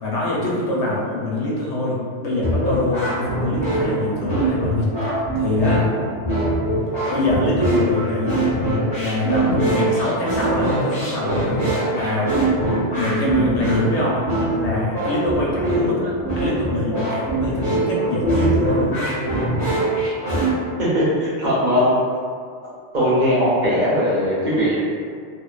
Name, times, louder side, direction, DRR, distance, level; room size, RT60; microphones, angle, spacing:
voice 1, 0.0-5.0 5.3-5.9 7.1-8.4 8.9-12.3 12.9-14.2 14.5-19.2, left 1 dB, 90° left, -5 dB, 0.9 m, -24 dB
sound 1, 2.4-20.5, right 1 dB, 30° left, 0.9 m, -22 dB
voice 2, 20.8-21.9 22.9-24.7, equal, 50° right, -9 dB, 0.7 m, -19 dB
2.4 x 2.3 x 2.2 m, 2.1 s
omnidirectional pair, 1.1 m